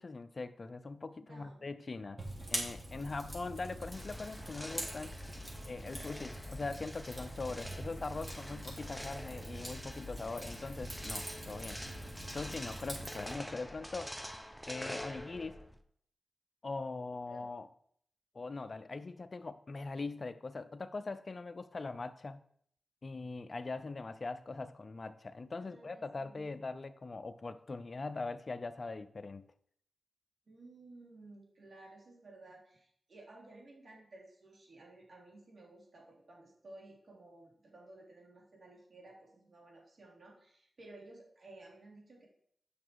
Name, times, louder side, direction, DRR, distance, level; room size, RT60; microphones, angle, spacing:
voice 1, 0.0-2.2 2.5-5.1 5.7-11.8 12.3-14.1 14.7-15.6 16.6-17.7 18.3-22.4 23.0-29.4, left 3 dB, 50° left, 0.6 m, -41 dB
voice 2, 1.2-1.7 17.3-17.5 25.6-26.5 30.5-42.3, right 2 dB, 65° right, 3.4 m, -55 dB
Fire, 2.2-13.3, right 1 dB, 25° right, 3.4 m, -44 dB
sound 1, 3.9-15.8, equal, ahead, 0.8 m, -47 dB
8.4 x 5.8 x 4.7 m
cardioid pair, 55°, 0 cm